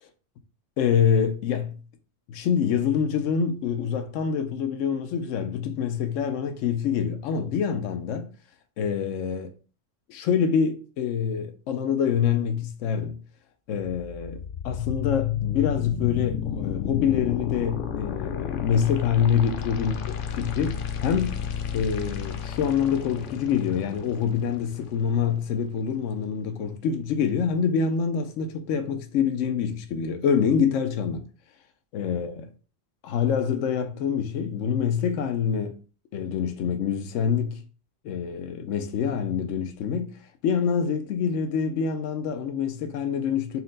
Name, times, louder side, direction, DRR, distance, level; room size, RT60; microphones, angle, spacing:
voice 1, 0.8-1.7 2.3-8.3 8.8-9.5 10.1-13.2 13.7-21.4 21.7-31.2 31.9-32.5 33.0-35.8 36.1-37.6 38.0-40.1 40.4-43.6, left 7 dB, 85° left, 0.9 m, -26 dB
sound 1, 13.8-25.8, left 8 dB, 60° left, 0.6 m, -32 dB
4.3 x 2.1 x 3.8 m
omnidirectional pair, 1.3 m